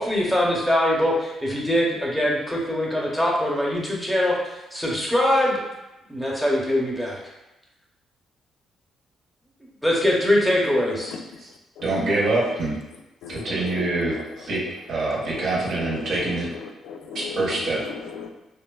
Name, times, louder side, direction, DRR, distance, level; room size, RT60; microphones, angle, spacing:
voice 1, 0.0-5.6 6.1-7.2 9.8-11.1, left 1 dB, ahead, -4 dB, 0.7 m, -22 dB
voice 2, 11.8-12.8 13.3-14.6 14.9-16.5 17.1-17.8, right 2 dB, 70° right, -5 dB, 0.9 m, -25 dB
voice 3, 13.2-14.2 14.5-14.6 15.3-15.4 15.8-16.3 16.6-18.3, left 6 dB, 80° left, 3 dB, 0.3 m, -36 dB
3.2 x 2.2 x 2.2 m, 0.97 s
cardioid pair, 90°, 0 cm